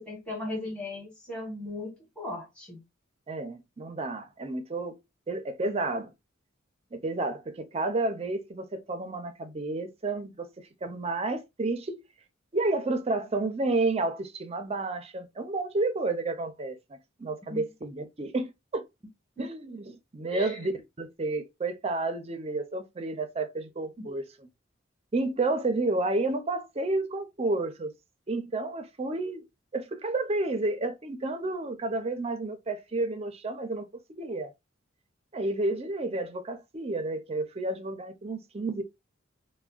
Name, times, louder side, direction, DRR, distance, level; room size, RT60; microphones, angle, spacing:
voice 1, 0.0-2.8 17.5-17.6 19.4-19.5 20.3-20.7 24.0-24.1, left 1 dB, 5° left, 1.2 m, -37 dB
voice 2, 3.3-5.0 5.3-6.1 6.9-10.5 10.8-12.0 12.5-18.8 19.4-20.7 21.0-24.2 25.1-27.9 28.3-29.4 29.7-33.9 34.2-34.5 35.3-38.8, right 2 dB, 30° right, 0.5 m, -31 dB
3.4 x 2.1 x 2.3 m
head